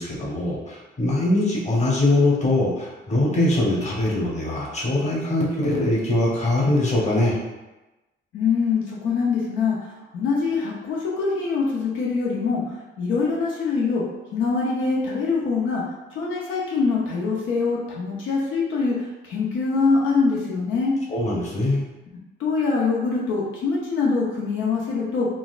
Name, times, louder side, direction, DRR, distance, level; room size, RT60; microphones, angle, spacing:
voice 1, 0.0-7.4 21.1-21.8, left 1 dB, 35° left, -4 dB, 1.1 m, -22 dB
voice 2, 8.3-9.8 10.1-12.6 13.0-14.0 14.3-15.8 16.2-18.9 19.3-20.9 22.4-25.3, left 4 dB, 85° left, -4 dB, 0.7 m, -23 dB
3.9 x 2.5 x 2.4 m, 1.1 s
cardioid pair, 90°, 20 cm